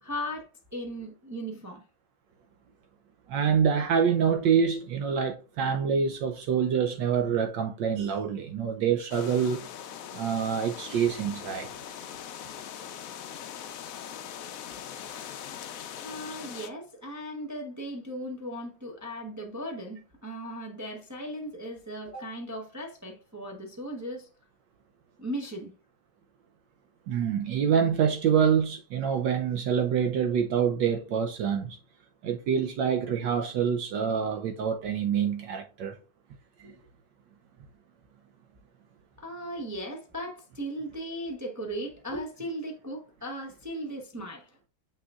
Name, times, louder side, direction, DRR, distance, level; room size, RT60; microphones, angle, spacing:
voice 1, 0.0-1.8 16.0-24.3 25.2-25.7 36.6-36.9 39.2-44.6, equal, 25° right, 0.3 m, -37 dB
voice 2, 3.3-9.6 10.1-11.7 27.1-31.8 32.2-36.0 36.6-36.7, right 7 dB, 70° right, 1.2 m, -26 dB
sound 1, 9.1-16.7, left 9 dB, 70° left, 0.8 m, -41 dB
7.0 x 6.1 x 2.4 m
omnidirectional pair, 2.2 m